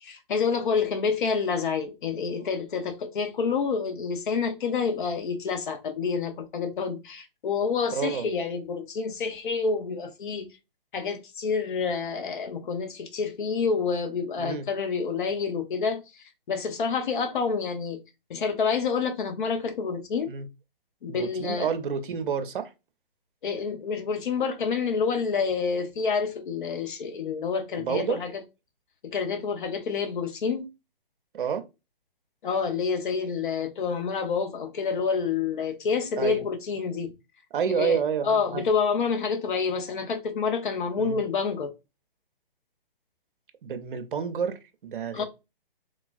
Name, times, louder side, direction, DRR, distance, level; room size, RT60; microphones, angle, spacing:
voice 1, 0.0-10.5 10.9-16.0 16.5-18.0 18.3-20.3 21.0-21.7 23.4-28.3 29.0-30.7 32.4-37.1 37.7-41.7 45.1-45.2, left 5 dB, 60° left, 0.7 m, -28 dB
voice 2, 7.9-8.3 14.4-14.7 20.3-20.5 21.1-22.7 27.8-28.2 31.3-31.7 36.2-36.4 37.5-38.6 41.0-41.2 43.6-45.2, right 7 dB, 60° right, 0.6 m, -29 dB
3.4 x 2.3 x 2.4 m
figure-of-eight pair, 140°, 29 cm